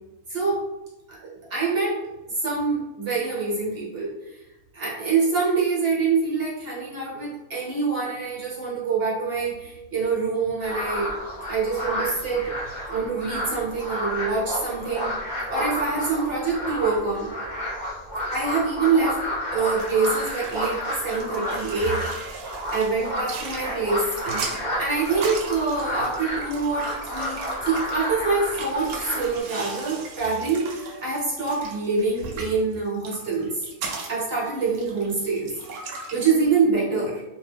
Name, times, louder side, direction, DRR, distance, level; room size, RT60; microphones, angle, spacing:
voice 1, 0.3-0.6 1.2-2.0 2.3-4.1 4.7-11.1 11.5-12.5 12.9-15.1 15.5-17.3 18.3-19.2 19.5-22.0 22.7-33.6 34.1-35.5 36.1-37.2, right 4 dB, 45° right, -6 dB, 1.1 m, -25 dB
sound 1, 10.6-29.4, equal, 50° left, 0.6 m, -31 dB
sound 2, 19.5-36.3, right 4 dB, 80° right, 1.1 m, -38 dB
2.9 x 2.1 x 3.3 m, 0.98 s
omnidirectional pair, 1.5 m